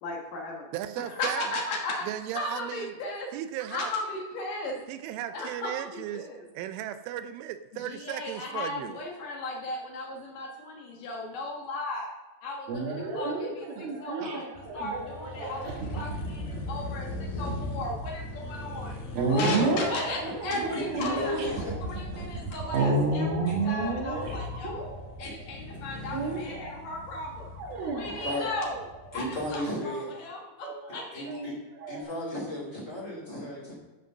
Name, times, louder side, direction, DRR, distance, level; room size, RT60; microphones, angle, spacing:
voice 1, 0.0-0.7 1.1-2.1 2.3-3.3 3.7-4.8 5.3-6.5 7.7-12.1 12.4-24.9 25.2-27.5 27.9-28.8 29.1-31.4, left 2 dB, 75° left, 0 dB, 2.0 m, -36 dB
voice 2, 0.7-1.5 2.0-3.0 3.3-3.9 4.9-6.3 6.5-9.0, right 12 dB, 85° right, 10 dB, 2.9 m, -36 dB
sound 1, 12.7-25.3 26.1-26.7 27.6-29.1 30.6-32.0, right 3 dB, 60° right, 2.7 m, -31 dB
sound 2, 14.5-29.6, left 2 dB, 55° left, 4.1 m, -41 dB
voice 3, 19.3-19.7 20.5-21.7 22.1-22.4 23.4-23.5 25.2-25.3 27.8-28.5 29.1-30.1 31.1-31.5 31.9-33.7, equal, 30° left, -4 dB, 1.5 m, -34 dB
14.0 x 5.2 x 6.0 m, 1.2 s
omnidirectional pair, 5.9 m